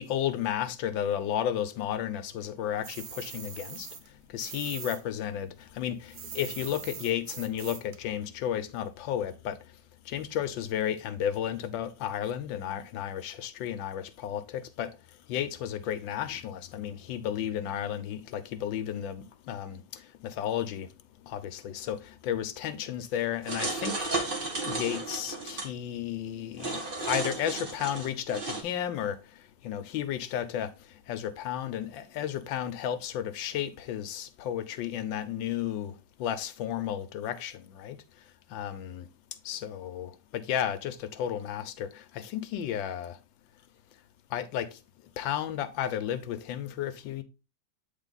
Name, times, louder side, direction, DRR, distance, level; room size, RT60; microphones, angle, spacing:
voice 1, 0.0-9.8 10.0-20.9 21.2-39.1 39.4-43.2 44.3-44.8 45.2-47.2, left 10 dB, 80° left, 1.4 m, -33 dB
sound 1, 2.8-5.0 5.3-8.0, right 7 dB, 75° right, 0.5 m, -42 dB
sound 2, 23.4-25.7 26.6-28.6, right 2 dB, 30° right, 1.3 m, -33 dB
8.2 x 3.6 x 3.9 m
omnidirectional pair, 2.1 m